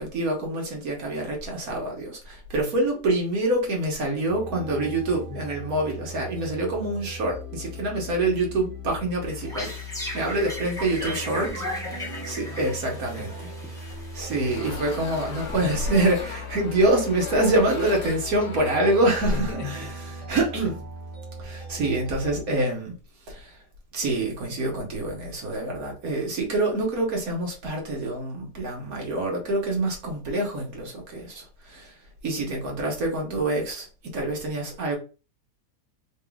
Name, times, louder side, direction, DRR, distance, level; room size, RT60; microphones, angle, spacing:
voice 1, 0.0-9.7 10.1-11.5 12.2-13.5 13.9-19.9 20.3-20.8 21.4-22.9 23.3-23.6 23.9-31.9 32.2-35.0, right 2 dB, 60° right, 1.6 m, -26 dB
sound 1, 4.3-22.4, left 1 dB, 35° right, 1.3 m, -39 dB
voice 2, 4.8-5.4 10.6-12.7 13.1-13.7 19.3-20.3 21.4-21.5, left 7 dB, 80° left, 1.5 m, -41 dB
sound 2, 9.2-16.5, equal, 5° left, 0.5 m, -38 dB
sound 3, 14.5-19.4, left 4 dB, 60° left, 1.6 m, -39 dB
3.8 x 3.6 x 2.3 m
omnidirectional pair, 1.8 m